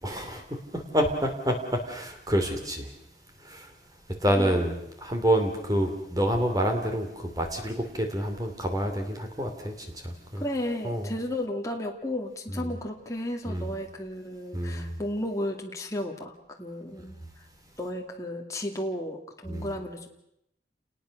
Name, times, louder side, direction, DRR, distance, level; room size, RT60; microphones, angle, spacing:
voice 1, 0.0-2.9 3.4-3.7 4.2-10.4 10.8-11.1 12.5-12.7 13.5-13.7 14.5-15.0 19.5-19.7, equal, 20° right, 5 dB, 2.9 m, -28 dB
voice 2, 10.4-17.5 17.8-20.1, left 1 dB, 20° left, 0 dB, 2.4 m, -34 dB
29.0 x 20.0 x 6.6 m, 0.81 s
head